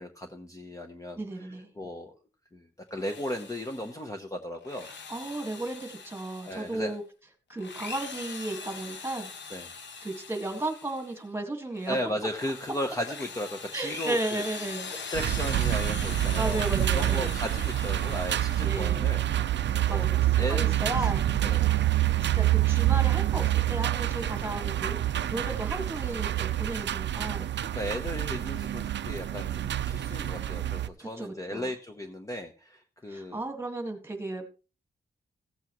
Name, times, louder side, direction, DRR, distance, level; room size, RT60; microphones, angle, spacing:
voice 1, 0.0-2.1 2.5-4.9 6.4-7.0 9.5-9.7 11.9-14.4 15.1-19.3 19.7-20.1 20.4-21.1 21.4-21.7 27.7-33.4, equal, 20° left, 5 dB, 0.9 m, -36 dB
voice 2, 1.2-1.7 5.1-7.0 7.5-9.3 10.0-12.0 13.7-14.9 16.4-17.4 18.6-19.1 19.8-21.2 22.2-27.5 31.0-31.7 33.1-34.4, right 2 dB, 15° right, 4 dB, 1.8 m, -34 dB
Drill, 2.9-4.0 4.5-6.9 7.5-11.2 11.7-19.2, left 5 dB, 80° left, 1.2 m, -42 dB
sound 1, 15.1-30.9, right 13 dB, 80° right, 0.5 m, -27 dB
15.5 x 8.2 x 3.1 m, 0.33 s
wide cardioid pair, 145°, 18 cm